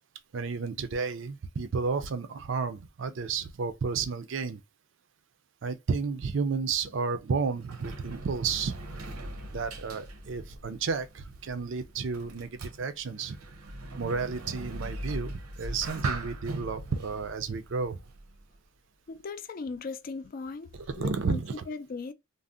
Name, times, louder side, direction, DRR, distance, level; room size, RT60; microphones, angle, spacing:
voice 1, 0.3-4.6 5.6-8.8 9.5-13.4 14.0-18.0 20.9-21.6, right 5 dB, 60° right, 0.4 m, -32 dB
Sliding door, 7.2-18.6, right 1 dB, 90° right, 0.7 m, -41 dB
voice 2, 19.1-21.4 21.7-22.1, left 4 dB, 40° left, 0.3 m, -38 dB
2.6 x 2.0 x 3.5 m
head